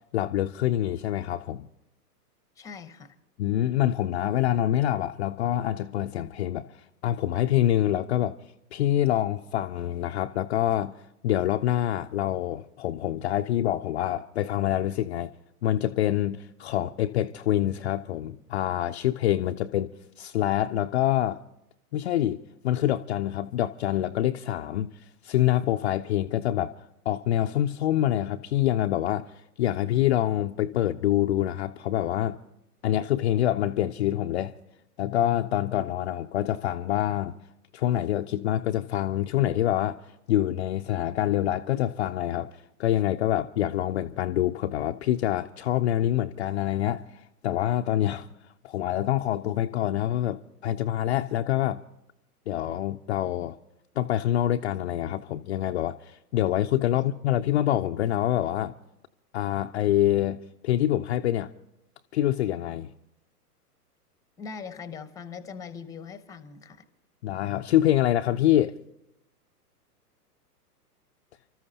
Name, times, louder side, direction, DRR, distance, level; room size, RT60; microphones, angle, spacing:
voice 1, 0.1-1.7 3.4-8.4 8.7-11.0 11.2-15.3 15.6-19.9 20.2-21.4 21.9-24.9 25.2-26.7 27.1-29.3 29.6-32.4 32.8-34.5 35.0-37.4 37.7-40.0 40.3-48.3 48.6-51.8 52.5-53.6 54.0-58.7 59.3-61.5 62.1-62.9 67.2-68.8, left 12 dB, 45° left, 0.5 m, -26 dB
voice 2, 2.6-3.1 56.9-57.1 64.4-66.8, left 6 dB, 5° left, 0.8 m, -41 dB
30.0 x 13.5 x 2.8 m
hypercardioid pair, 115°, 47 cm